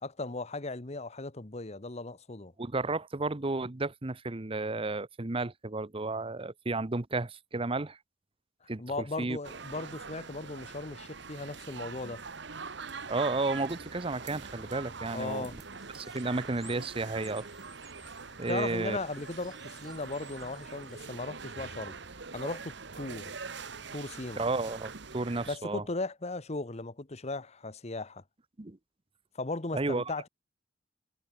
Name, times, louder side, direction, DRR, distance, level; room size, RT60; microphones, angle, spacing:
voice 1, 0.0-2.5 8.8-12.2 15.1-15.6 18.5-21.9 22.3-23.3 23.9-24.5 25.5-28.2 29.3-30.3, left 2 dB, 35° left, 1.2 m, -37 dB
voice 2, 2.6-8.0 8.7-9.4 13.1-15.5 15.9-17.5 18.4-19.0 24.4-25.8 28.6-28.8 29.7-30.0, right 3 dB, 30° right, 0.9 m, -32 dB
sound 1, 9.4-25.6, right 5 dB, 65° right, 1.5 m, -44 dB
sound 2, 13.3-21.0, equal, ahead, 6.1 m, -57 dB
head